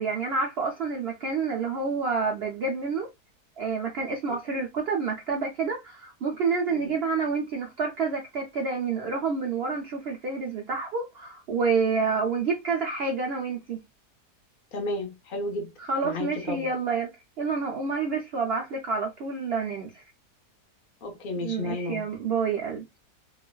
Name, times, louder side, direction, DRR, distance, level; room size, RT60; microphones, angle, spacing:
voice 1, 0.0-3.1 3.6-13.8 15.8-17.1 17.4-20.0 21.4-23.0, right 4 dB, 85° right, 0.5 m, -28 dB
voice 2, 4.3-4.6 6.7-6.9 14.7-15.7 16.0-16.7 21.0-22.0, left 2 dB, 40° left, 0.8 m, -33 dB
3.0 x 2.4 x 2.2 m
omnidirectional pair, 1.8 m